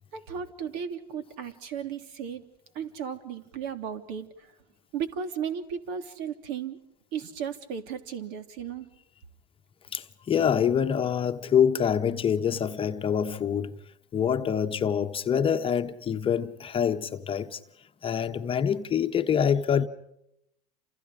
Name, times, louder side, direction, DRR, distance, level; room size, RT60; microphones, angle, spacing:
voice 1, 0.1-2.4 2.7-4.5 4.9-6.8 7.1-8.9, right 7 dB, 55° right, 3.2 m, -35 dB
voice 2, 9.9-13.8 14.1-17.6 18.0-19.9, left 8 dB, 25° left, 1.2 m, -25 dB
29.5 x 28.0 x 5.1 m
hypercardioid pair, 105°, 21 cm